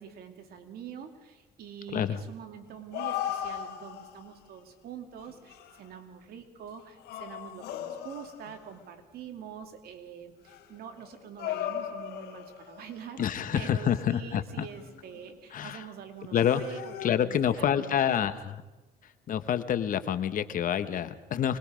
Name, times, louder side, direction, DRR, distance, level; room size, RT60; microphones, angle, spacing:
voice 1, 0.0-18.2, right 8 dB, 65° right, 5 dB, 2.6 m, -45 dB
sound 1, 2.7-4.3 5.3-5.9 6.8-8.7 10.5-13.0 14.6-15.4 16.3-17.1, left 11 dB, 80° left, 3.1 m, -37 dB
voice 2, 13.2-14.7 15.5-15.8 16.3-16.6 17.0-18.4 19.3-21.6, left 9 dB, 55° left, 11 dB, 1.2 m, -27 dB
25.0 x 20.5 x 5.1 m, 1.1 s
cardioid pair, 110°, 17 cm